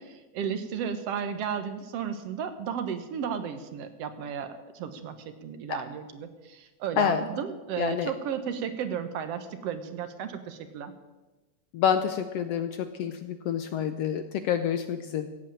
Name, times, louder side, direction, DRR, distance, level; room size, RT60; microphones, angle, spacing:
voice 1, 0.0-5.2 5.4-10.9, right 7 dB, 65° right, 10 dB, 2.0 m, -34 dB
voice 2, 7.8-8.1 11.7-15.3, left 8 dB, 75° left, 9 dB, 1.6 m, -28 dB
16.0 x 8.3 x 8.7 m, 1.2 s
omnidirectional pair, 3.3 m